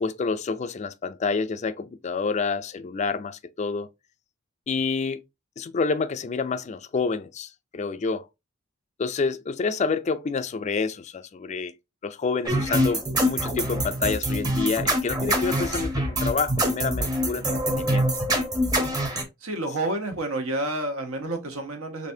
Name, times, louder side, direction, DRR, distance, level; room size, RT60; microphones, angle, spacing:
voice 1, 0.0-3.9 4.7-5.2 5.6-8.3 9.0-11.7 12.0-18.1, left 4 dB, 35° left, 0.3 m, -28 dB
sound 1, 12.5-19.2, equal, 20° right, 0.7 m, -25 dB
voice 2, 19.4-22.1, right 1 dB, 80° right, 1.0 m, -29 dB
4.0 x 3.3 x 2.7 m
head